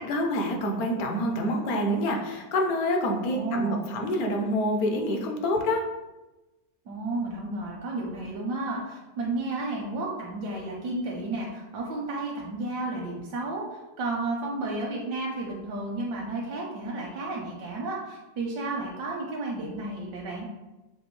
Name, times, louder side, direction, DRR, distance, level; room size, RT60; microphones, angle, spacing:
voice 1, 0.0-5.8, left 1 dB, 65° left, 2 dB, 1.1 m, -27 dB
voice 2, 3.1-3.7 6.9-20.5, right 2 dB, 85° right, -3 dB, 1.4 m, -32 dB
6.3 x 2.7 x 3.1 m, 1.0 s
omnidirectional pair, 1.8 m